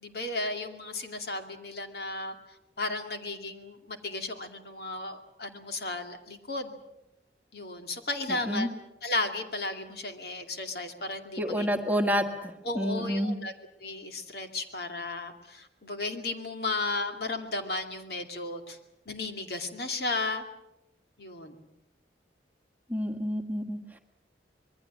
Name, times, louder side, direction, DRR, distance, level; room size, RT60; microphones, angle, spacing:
voice 1, 0.0-2.3 2.8-6.8 7.5-8.7 9.0-11.7 12.7-13.5 13.8-18.8 19.1-20.4 21.2-21.6, left 2 dB, 60° left, 5 dB, 2.4 m, -34 dB
voice 2, 8.3-8.7 11.4-13.4 22.9-24.0, equal, 10° right, 5 dB, 1.6 m, -29 dB
26.0 x 21.5 x 7.4 m, 0.89 s
head